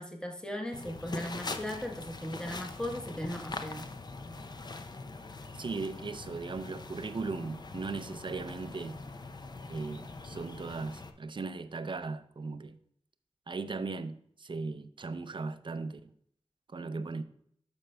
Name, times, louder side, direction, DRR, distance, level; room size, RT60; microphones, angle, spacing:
voice 1, 0.0-3.9 16.8-16.9, equal, 5° left, 1.0 m, -38 dB
sound 1, 0.7-11.1, left 3 dB, 40° left, 0.5 m, -43 dB
voice 2, 5.5-9.0 9.7-12.8 13.5-16.1 16.7-17.2, right 3 dB, 45° right, 0.4 m, -38 dB
12.0 x 5.2 x 2.2 m
wide cardioid pair, 85°, 11 cm